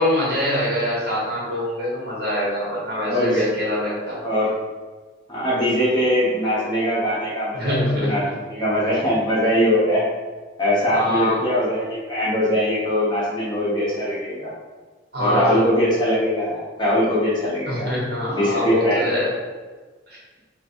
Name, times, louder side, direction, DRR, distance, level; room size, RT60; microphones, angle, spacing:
voice 1, 0.0-4.2 7.5-8.2 10.9-11.4 15.1-15.6 17.7-19.3 20.1-20.2, left 1 dB, 60° right, -6 dB, 1.2 m, -24 dB
voice 2, 3.0-3.4 4.2-4.6 5.3-10.1 10.6-14.5 15.2-17.9 18.3-19.1, equal, 25° left, -7 dB, 1.0 m, -21 dB
3.0 x 2.6 x 4.3 m, 1.3 s
head